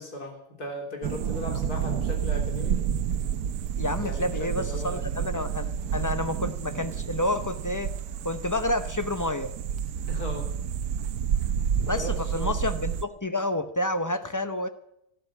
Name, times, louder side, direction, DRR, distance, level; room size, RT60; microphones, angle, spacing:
voice 1, 0.0-2.8 4.0-5.1 10.1-10.5 11.8-12.6, left 2 dB, 75° left, 2 dB, 3.9 m, -37 dB
sound 1, 1.0-13.0, right 8 dB, 85° right, 1.3 m, -30 dB
voice 2, 3.8-7.9 8.2-9.5 11.8-14.7, left 1 dB, 30° left, 10 dB, 0.3 m, -29 dB
12.5 x 12.5 x 8.4 m, 0.79 s
omnidirectional pair, 1.6 m